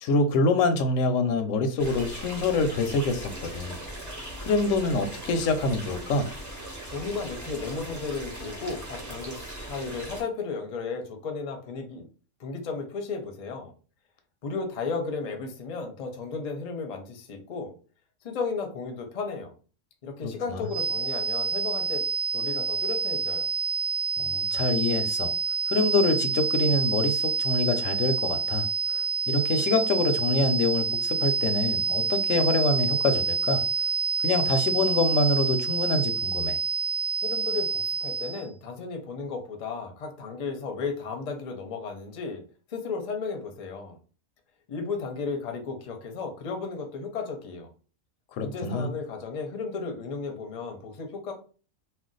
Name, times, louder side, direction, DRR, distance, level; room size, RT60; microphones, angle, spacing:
voice 1, 0.0-3.8 4.4-6.3 20.5-20.6 24.2-25.3 25.7-28.7 29.3-33.6 34.2-36.6 48.4-48.9, left 3 dB, 90° left, 8 dB, 1.0 m, -25 dB
sound 1, 1.8-10.2, right 1 dB, 15° right, 0.8 m, -39 dB
voice 2, 6.9-9.4 9.7-12.0 12.4-13.7 14.4-17.7 18.2-19.5 20.0-22.0 22.3-23.5 37.2-42.4 42.7-44.0 44.7-47.7 48.4-51.3, left 4 dB, 45° left, 4 dB, 0.5 m, -34 dB
sound 2, 20.7-38.4, right 5 dB, 65° right, 0.9 m, -28 dB
2.5 x 2.2 x 3.8 m, 0.38 s
omnidirectional pair, 1.3 m